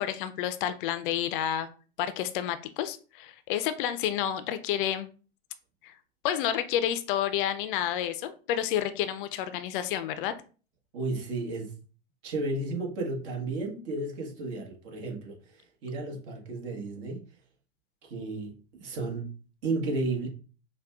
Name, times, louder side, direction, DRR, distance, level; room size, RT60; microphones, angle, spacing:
voice 1, 0.0-1.7 2.0-5.1 5.8-5.9 6.2-10.3, left 10 dB, 55° left, 0.4 m, -30 dB
voice 2, 10.9-11.7 12.2-17.3 18.0-19.3 19.6-20.3, right 2 dB, 55° right, 1.3 m, -33 dB
4.8 x 2.3 x 2.3 m
hypercardioid pair, 100°, 31 cm